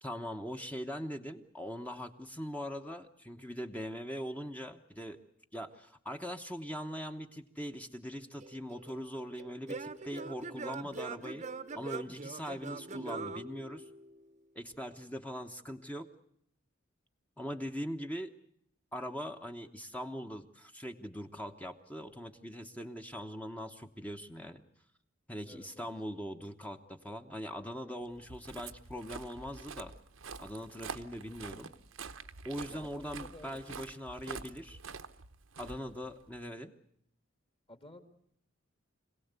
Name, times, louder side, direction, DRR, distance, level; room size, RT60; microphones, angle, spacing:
voice 1, 0.0-5.2 5.5-11.5 11.7-13.9 14.5-16.1 17.4-18.3 18.9-24.6 25.3-29.9 30.4-31.7 32.4-34.8 35.6-36.7, equal, 5° left, 6 dB, 1.0 m, -41 dB
Singing / Plucked string instrument, 8.4-14.3, right 4 dB, 35° right, 0.9 m, -43 dB
voice 2, 25.4-25.9 32.7-33.6 37.7-38.0, left 1 dB, 30° left, 7 dB, 2.2 m, -52 dB
Walk footsteps, 28.1-36.4, right 5 dB, 80° right, 1.0 m, -47 dB
25.5 x 17.5 x 8.2 m, 0.70 s
head